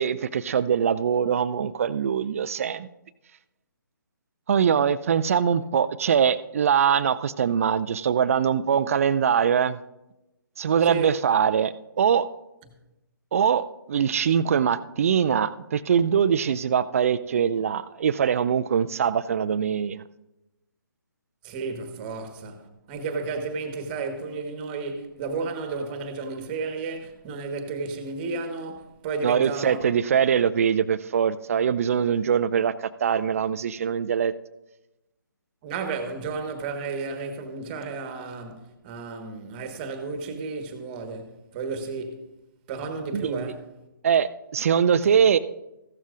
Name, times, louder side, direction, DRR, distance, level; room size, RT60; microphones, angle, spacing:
voice 1, 0.0-2.9 4.5-9.8 10.6-12.2 13.3-20.0 29.2-34.3 43.1-43.5 44.0-45.4, right 7 dB, 40° right, 0.4 m, -23 dB
voice 2, 21.4-22.6 22.9-29.8 35.6-42.2 42.7-43.7, right 4 dB, 25° right, 1.3 m, -32 dB
15.0 x 12.5 x 2.5 m
figure-of-eight pair, 145°, 11 cm